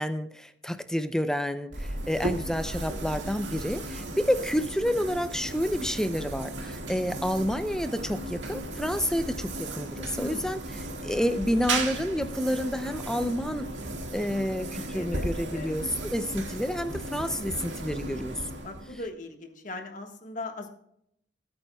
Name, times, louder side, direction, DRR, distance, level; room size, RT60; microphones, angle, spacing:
voice 1, 0.0-10.6 11.0-13.7 14.1-18.4, equal, 5° left, 10 dB, 0.5 m, -29 dB
sound 1, 1.7-19.1, right 2 dB, 90° right, 1.9 m, -35 dB
voice 2, 4.0-4.4 10.1-10.6 14.6-15.7 18.6-20.7, left 2 dB, 45° left, 4 dB, 1.5 m, -40 dB
18.0 x 8.9 x 2.3 m, 0.72 s
head